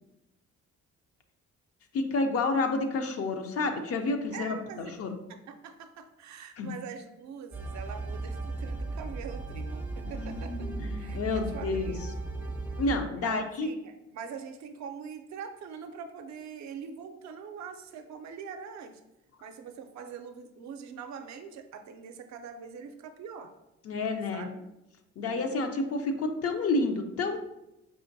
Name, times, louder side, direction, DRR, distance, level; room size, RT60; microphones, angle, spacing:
voice 1, 1.9-5.2 6.6-6.7 10.1-11.9 12.8-13.7 23.8-24.5 25.2-27.4, left 3 dB, 50° left, 6 dB, 0.5 m, -30 dB
voice 2, 4.3-4.9 5.3-10.7 11.0-12.1 13.1-18.9 19.4-23.5 24.3-24.5 25.2-25.6, right 6 dB, 70° right, 7 dB, 0.5 m, -43 dB
sound 1, 7.5-13.0, right 2 dB, 5° right, 0.3 m, -36 dB
4.9 x 2.5 x 2.6 m, 0.91 s
cardioid pair, 90°, 30 cm